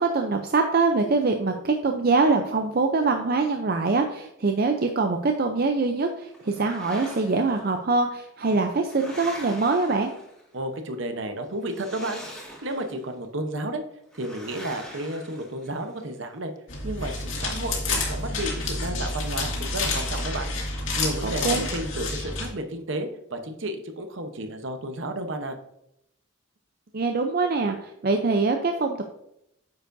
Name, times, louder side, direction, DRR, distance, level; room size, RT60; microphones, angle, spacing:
voice 1, 0.0-10.1 21.2-21.7 26.9-29.0, right 3 dB, 45° right, 5 dB, 0.5 m, -24 dB
sound 1, 6.3-7.6 8.4-10.6 11.6-13.1 14.1-16.0, equal, 5° left, 1.8 m, -43 dB
voice 2, 10.5-12.2 12.6-13.8 14.1-16.5 16.8-20.5 21.0-25.6, right 1 dB, 60° right, 6 dB, 0.9 m, -32 dB
sound 2, 16.7-22.5, left 2 dB, 65° left, 2.2 m, -29 dB
9.4 x 6.9 x 2.6 m, 0.80 s
head